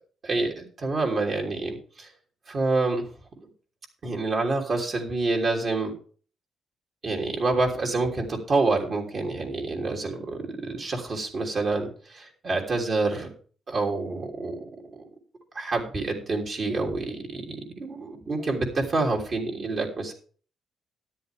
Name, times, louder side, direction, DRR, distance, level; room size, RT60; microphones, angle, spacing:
voice 1, 0.2-2.1 2.5-3.1 4.0-5.9 7.0-13.3 13.7-14.7 15.5-20.1, right 3 dB, 45° right, 0 dB, 3.2 m, -27 dB
13.0 x 10.5 x 3.6 m, 0.42 s
cardioid pair, 90°, 0 cm